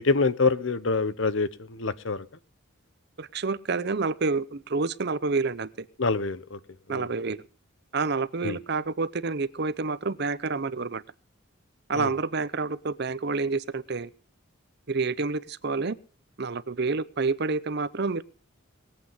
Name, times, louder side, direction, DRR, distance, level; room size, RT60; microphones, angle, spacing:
voice 1, 0.0-2.2 6.0-6.6 6.9-7.1 8.4-8.6 11.9-12.1, left 3 dB, 65° left, 16 dB, 0.9 m, -26 dB
voice 2, 3.2-5.9 6.9-7.4 7.9-11.0 11.9-14.1 14.9-16.0 16.4-18.2, right 4 dB, 55° right, 17 dB, 0.7 m, -28 dB
20.5 x 8.5 x 5.6 m, 0.39 s
head